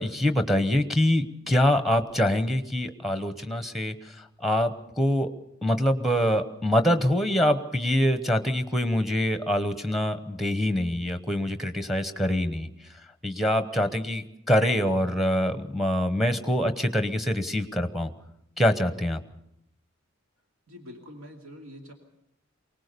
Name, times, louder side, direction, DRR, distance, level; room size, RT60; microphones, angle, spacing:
voice 1, 0.0-5.3 5.6-12.7 13.2-18.1 18.6-19.2, left 1 dB, ahead, 9 dB, 1.0 m, -25 dB
voice 2, 20.7-21.9, equal, 85° right, 2 dB, 2.6 m, -45 dB
24.0 x 19.0 x 6.8 m, 0.81 s
head